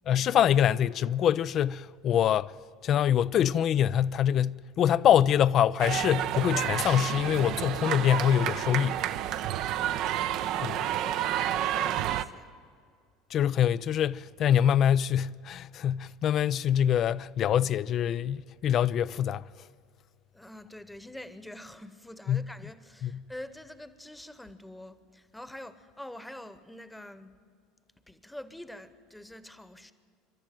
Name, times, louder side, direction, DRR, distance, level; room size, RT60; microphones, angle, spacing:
voice 1, 0.1-2.5 2.8-9.0 10.6-10.7 13.3-19.5 22.3-22.5 23.0-23.2, left 10 dB, 45° left, 0.4 m, -25 dB
sound 1, 5.8-12.2, right 12 dB, 55° right, 0.7 m, -30 dB
voice 2, 9.2-10.1 10.7-12.5 20.3-27.4 28.1-29.9, left 1 dB, 5° left, 1.1 m, -46 dB
27.5 x 12.5 x 9.1 m
figure-of-eight pair, 70°, 0 cm